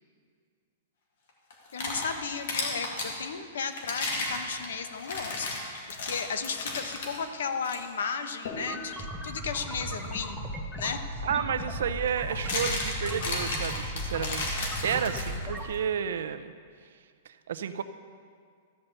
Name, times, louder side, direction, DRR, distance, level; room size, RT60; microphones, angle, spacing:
sound 1, 1.5-3.1 3.7-7.2 7.6-7.8 8.4-8.7 10.8-10.9 12.1-15.6, left 2 dB, 65° left, 2.4 m, -34 dB
voice 1, 1.7-10.4 10.8-11.0, left 6 dB, 85° left, 8 dB, 1.0 m, -34 dB
sound 2, 8.5-15.6, equal, 5° left, 1.2 m, -36 dB
voice 2, 11.2-14.6 14.8-16.5 17.3-17.8, right 8 dB, 75° right, 10 dB, 0.6 m, -31 dB
14.0 x 5.6 x 8.1 m, 2.1 s
supercardioid pair, 165°, 0 cm